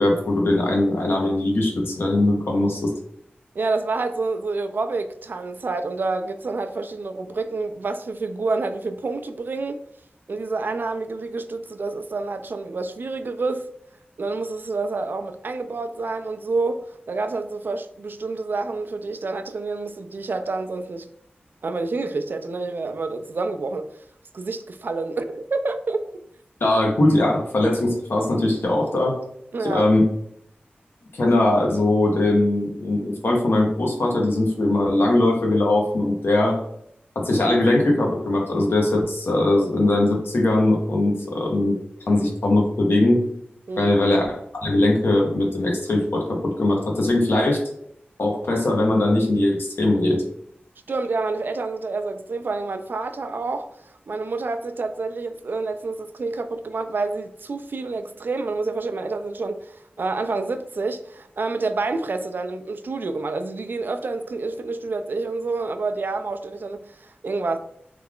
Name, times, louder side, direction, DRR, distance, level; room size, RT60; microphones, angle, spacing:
voice 1, 0.0-2.9 26.6-29.2 29.6-30.0 31.1-36.6 37.1-41.8 42.1-43.2 43.8-44.3 44.6-47.6 48.2-50.2, left 1 dB, 75° left, 0.9 m, -20 dB
voice 2, 3.5-9.8 10.3-13.7 14.2-21.1 21.6-23.9 24.3-26.0 29.5-29.9 43.7-44.1 50.9-67.6, right 3 dB, 60° right, 0.3 m, -28 dB
3.2 x 2.4 x 3.5 m
wide cardioid pair, 95°, 4 cm